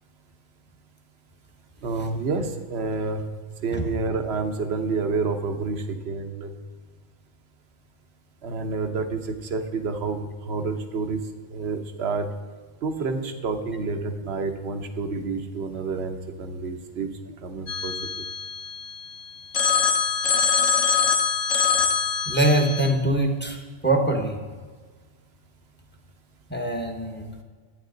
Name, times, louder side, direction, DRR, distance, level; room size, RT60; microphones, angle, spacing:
voice 1, 1.8-3.2 3.6-6.5 8.4-11.2 11.5-12.3 12.8-17.1 17.4-17.9 20.7-20.8, right 4 dB, 55° right, 7 dB, 1.2 m, -29 dB
Telephone, 17.7-19.1 19.5-22.9, left 6 dB, 80° left, 1.3 m, -24 dB
voice 2, 22.3-23.6 23.8-24.4 26.5-27.2, right 1 dB, 10° left, 2 dB, 1.1 m, -22 dB
11.5 x 9.4 x 3.9 m, 1.5 s
omnidirectional pair, 1.3 m